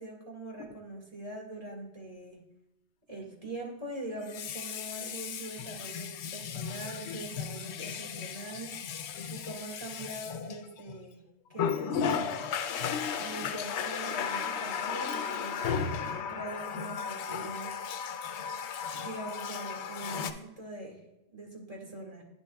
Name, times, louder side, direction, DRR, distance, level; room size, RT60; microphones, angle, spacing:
voice 1, 0.0-2.4 3.1-8.7 9.3-11.2 11.5-12.5 13.2-15.9 16.3-17.7 18.9-21.0 21.3-22.2, right 2 dB, 35° right, -1 dB, 2.0 m, -42 dB
Water tap faucet, 0.6-0.7 4.2-11.0 11.5-20.3, left 7 dB, 90° left, 0.9 m, -35 dB
9.9 x 7.0 x 2.3 m, 0.93 s
omnidirectional pair, 1.1 m